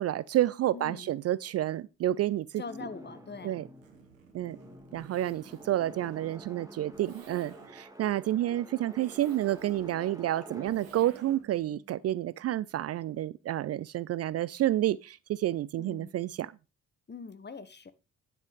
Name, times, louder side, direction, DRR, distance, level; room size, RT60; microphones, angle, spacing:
voice 1, 0.0-2.6 3.4-3.7 4.3-4.6 4.9-16.5, right 13 dB, 40° right, 0.4 m, -30 dB
voice 2, 0.7-1.1 2.6-3.6 15.8-16.1 17.1-17.9, left 5 dB, 25° left, 1.3 m, -43 dB
sound 1, 2.6-12.6, right 1 dB, 10° right, 2.2 m, -50 dB
Zipper (clothing), 3.7-11.6, right 5 dB, 85° right, 1.2 m, -55 dB
10.0 x 6.0 x 5.0 m
figure-of-eight pair, 40°, 39 cm